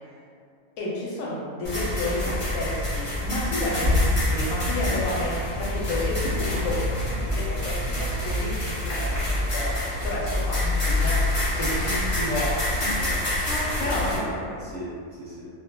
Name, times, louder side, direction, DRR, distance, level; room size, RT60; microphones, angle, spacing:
voice 1, 0.8-9.7 10.0-11.2 11.5-12.5 13.8-14.2, left 1 dB, 80° left, -5 dB, 1.0 m, -31 dB
sound 1, 1.6-14.2, left 1 dB, 35° left, 0.6 m, -26 dB
voice 2, 4.6-5.1 12.8-13.2 13.9-15.5, equal, 60° right, -8 dB, 0.7 m, -36 dB
2.3 x 2.1 x 2.8 m, 2.2 s
omnidirectional pair, 1.4 m